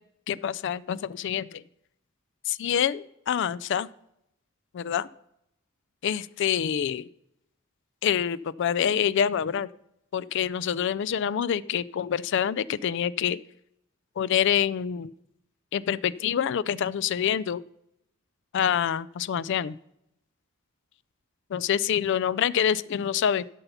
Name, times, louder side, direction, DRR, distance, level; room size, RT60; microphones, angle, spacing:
voice 1, 0.3-1.6 2.5-3.9 4.7-5.1 6.0-7.1 8.0-9.7 10.1-13.4 14.2-15.1 15.7-17.6 18.5-19.8 21.5-23.4, left 8 dB, 55° left, 19 dB, 0.3 m, -26 dB
12.0 x 5.6 x 5.6 m, 0.78 s
head